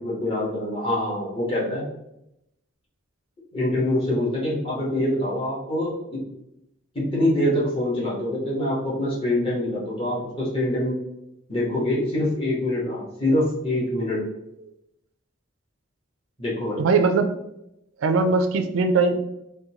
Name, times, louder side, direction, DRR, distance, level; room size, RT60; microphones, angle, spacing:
voice 1, 0.0-1.8 3.5-6.2 6.9-11.0 11.5-14.3 16.4-16.8, left 1 dB, 25° left, -6 dB, 1.1 m, -25 dB
voice 2, 16.8-17.3 18.0-19.1, right 4 dB, 80° right, 7 dB, 0.3 m, -20 dB
3.7 x 2.2 x 2.9 m, 0.84 s
head